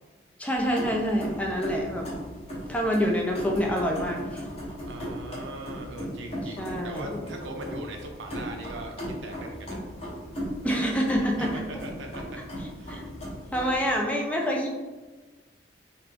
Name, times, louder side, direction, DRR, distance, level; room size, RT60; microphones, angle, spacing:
voice 1, 0.4-2.1 2.7-4.4 6.6-7.2 10.6-11.6 12.9-13.0 13.5-14.7, equal, 10° left, 0 dB, 0.3 m, -27 dB
sound 1, 0.5-14.0, equal, 35° left, 0.9 m, -37 dB
voice 2, 4.8-9.8 11.4-12.4 12.8-13.1, right 2 dB, 85° right, 2 dB, 0.6 m, -40 dB
3.3 x 2.4 x 3.3 m, 1.3 s
head